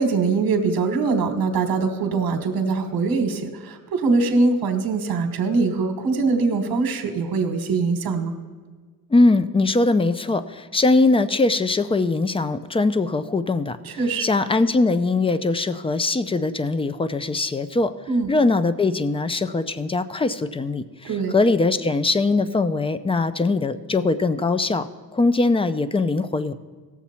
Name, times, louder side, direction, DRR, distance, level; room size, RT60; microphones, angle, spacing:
voice 1, 0.0-8.3 13.8-14.2 18.1-18.3 21.0-21.3, right 4 dB, 70° right, 6 dB, 1.2 m, -22 dB
voice 2, 9.1-17.9 18.3-26.5, left 3 dB, 15° left, 13 dB, 0.4 m, -21 dB
17.5 x 7.1 x 4.3 m, 1.5 s
cardioid pair, 120°, 37 cm